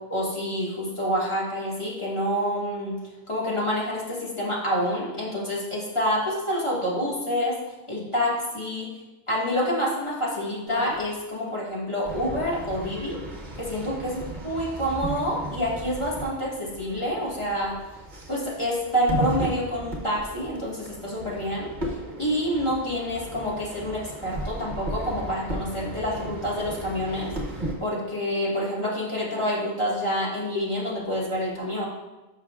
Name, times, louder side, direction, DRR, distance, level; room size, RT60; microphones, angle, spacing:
voice 1, 0.1-3.0 3.3-7.6 7.9-8.9 9.3-13.2 13.6-17.8 18.3-21.7 22.2-27.3 27.8-31.8, equal, 25° left, -6 dB, 1.8 m, -27 dB
sound 1, 10.7-11.0 12.0-27.7, right 2 dB, 45° right, 1.3 m, -35 dB
11.5 x 5.9 x 2.4 m, 1.1 s
omnidirectional pair, 1.2 m